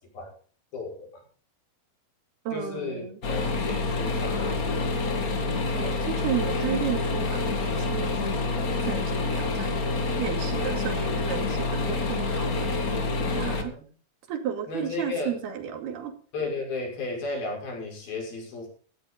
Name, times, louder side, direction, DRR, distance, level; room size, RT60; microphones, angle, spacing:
voice 1, 0.7-1.1 2.5-5.0 12.9-13.8 14.7-15.4 16.3-18.7, left 3 dB, 70° left, 1 dB, 7.6 m, -34 dB
voice 2, 2.5-3.2 5.7-9.8 10.2-13.1 13.3-13.8 14.3-16.1, right 8 dB, 85° right, 7 dB, 4.3 m, -33 dB
sound 1, 3.2-13.6, left 3 dB, 40° left, 1.3 m, -27 dB
16.5 x 14.5 x 3.9 m, 0.42 s
omnidirectional pair, 4.4 m